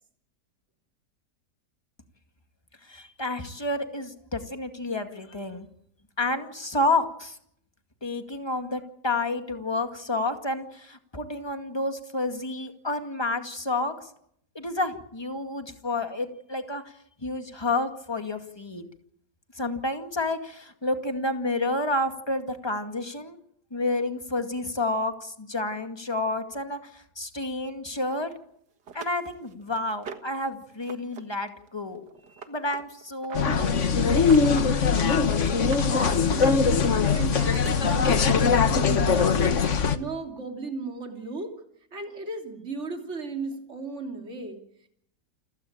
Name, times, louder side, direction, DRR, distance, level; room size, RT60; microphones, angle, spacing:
voice 1, 2.8-5.7 6.2-7.4 8.0-14.1 14.5-16.9 17.2-18.9 19.5-23.4 23.7-28.3 28.9-32.0 32.5-33.9, left 2 dB, 15° left, 6 dB, 2.1 m, -30 dB
sound 1, 28.3-28.4 28.9-30.4 30.8-31.2 31.5-33.6 34.1-34.7 35.0-35.9 36.3-37.7 38.7-38.8 39.2-39.3, right 6 dB, 80° right, 2.3 m, -43 dB
sound 2, 33.3-40.0, left 5 dB, 50° left, 1.4 m, -21 dB
voice 2, 35.9-36.5 37.1-39.5 39.9-41.5 41.9-44.6, right 3 dB, 40° right, 3 dB, 3.5 m, -35 dB
29.0 x 15.5 x 8.9 m, 0.72 s
omnidirectional pair, 1.8 m